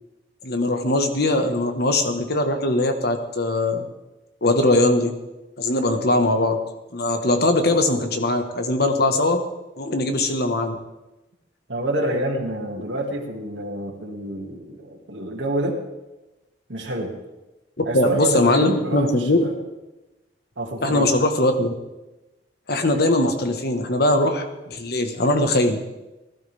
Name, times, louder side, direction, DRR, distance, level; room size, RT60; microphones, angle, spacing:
voice 1, 0.4-3.8 4.4-5.1 5.6-6.6 6.9-9.4 9.8-10.8 17.8-19.4 20.8-21.7 22.7-25.8, left 2 dB, 60° left, 6 dB, 1.5 m, -21 dB
voice 2, 11.7-15.8 16.7-17.1 17.8-19.5 20.6-21.1, right 1 dB, 85° right, -1 dB, 2.4 m, -27 dB
19.5 x 12.0 x 3.6 m, 1.0 s
head